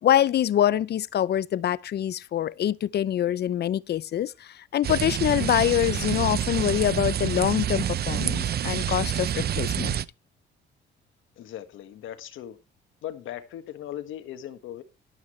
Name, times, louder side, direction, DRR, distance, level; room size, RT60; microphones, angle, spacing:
voice 1, 0.0-10.0, left 11 dB, 55° left, 0.5 m, -25 dB
sound 1, 4.8-10.1, right 10 dB, 55° right, 0.6 m, -28 dB
voice 2, 11.4-12.6 13.0-14.8, left 11 dB, 85° left, 1.6 m, -38 dB
12.0 x 11.0 x 3.1 m
cardioid pair, 90°, 20 cm